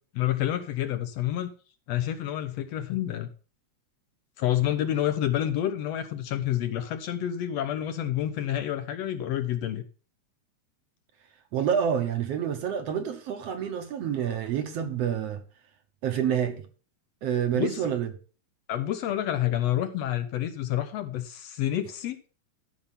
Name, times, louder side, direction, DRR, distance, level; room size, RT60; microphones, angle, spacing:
voice 1, 0.1-1.5 1.9-3.3 4.4-9.8 17.6-17.9 18.7-22.2, left 12 dB, 70° left, 1.8 m, -28 dB
voice 2, 11.5-15.4 16.0-16.7 17.2-18.1, right 8 dB, 65° right, 1.9 m, -28 dB
13.0 x 5.7 x 5.6 m
omnidirectional pair, 3.4 m